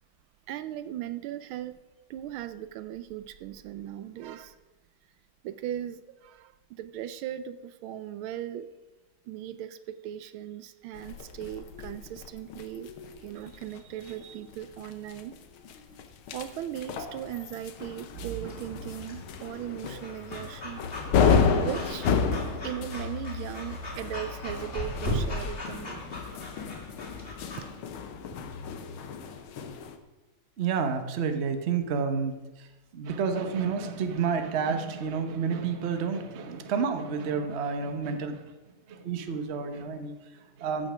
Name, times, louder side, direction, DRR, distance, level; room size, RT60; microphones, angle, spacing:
voice 1, 0.5-1.8 2.1-4.6 5.4-8.7 9.3-12.9 13.2-15.4 16.3-20.9 21.6-22.1 22.6-26.1, right 11 dB, 80° right, 12 dB, 1.4 m, -38 dB
sound 1, 10.9-30.0, left 6 dB, 80° left, 1.8 m, -32 dB
sound 2, 17.1-22.5, left 7 dB, 65° left, 1.0 m, -44 dB
Breathing / Dog, 18.5-27.6, left 1 dB, 25° left, 2.1 m, -38 dB
voice 2, 30.6-38.5 38.9-40.9, right 6 dB, 45° right, 7 dB, 1.0 m, -30 dB
14.5 x 6.6 x 6.2 m, 1.1 s
omnidirectional pair, 2.3 m